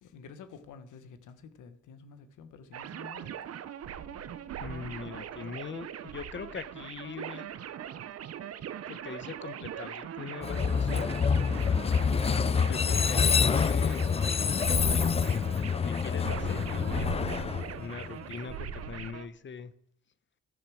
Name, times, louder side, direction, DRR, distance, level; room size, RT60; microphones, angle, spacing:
voice 1, 0.0-3.6, left 5 dB, 80° left, 1.3 m, -50 dB
sound 1, 2.7-19.3, right 10 dB, 55° right, 0.7 m, -42 dB
sound 2, 3.8-5.7 6.1-7.0 14.6-19.2, right 6 dB, 75° right, 2.0 m, -42 dB
voice 2, 4.6-7.5 8.9-11.2 12.7-14.9 15.2-15.5 15.8-19.7, left 6 dB, 40° left, 0.9 m, -42 dB
Train, 10.4-18.4, left 6 dB, 20° left, 0.4 m, -27 dB
13.5 x 6.8 x 6.3 m
cardioid pair, 90°, 30 cm